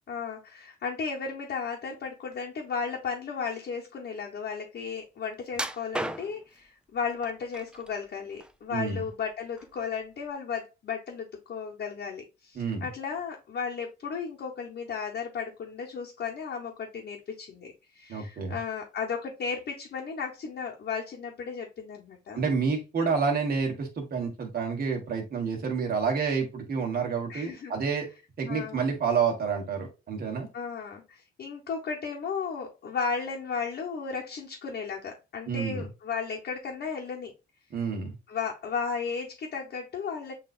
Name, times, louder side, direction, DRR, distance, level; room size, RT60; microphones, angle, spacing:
voice 1, 0.1-22.5 23.0-23.1 27.3-27.7 28.5-28.9 30.5-37.3 38.3-40.3, left 5 dB, 55° left, -2 dB, 1.0 m, -34 dB
sound 1, 5.5-6.6 7.2-7.9 8.3-9.2 9.6-9.8 10.3-10.4, right 1 dB, 5° right, 0.4 m, -35 dB
voice 2, 8.7-9.0 12.5-12.8 18.1-18.6 22.3-28.1 28.4-30.5 35.5-35.9 37.7-38.1, right 5 dB, 50° right, 1 dB, 1.4 m, -29 dB
7.1 x 2.7 x 2.4 m, 0.27 s
cardioid pair, 90°, 20 cm